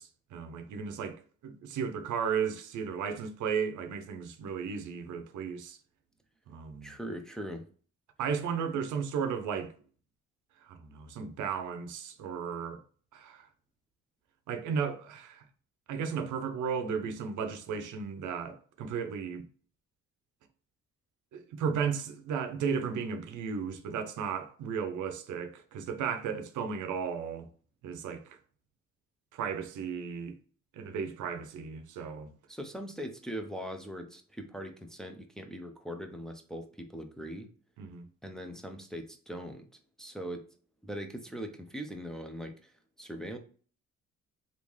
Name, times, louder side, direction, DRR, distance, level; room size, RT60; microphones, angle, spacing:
voice 1, 0.0-5.8 6.5-6.9 8.2-9.7 10.6-12.8 13.1-13.5 14.5-15.4 15.9-19.4 21.3-27.5 27.8-28.4 29.3-30.3 30.7-32.3 37.8-38.1, right 6 dB, 80° right, 0.6 m, -34 dB
voice 2, 6.8-7.7 32.5-37.5 38.2-39.7 40.0-40.4 40.8-42.7 43.0-43.4, equal, ahead, 0.5 m, -40 dB
3.5 x 2.5 x 3.1 m
cardioid pair, 90°, 30 cm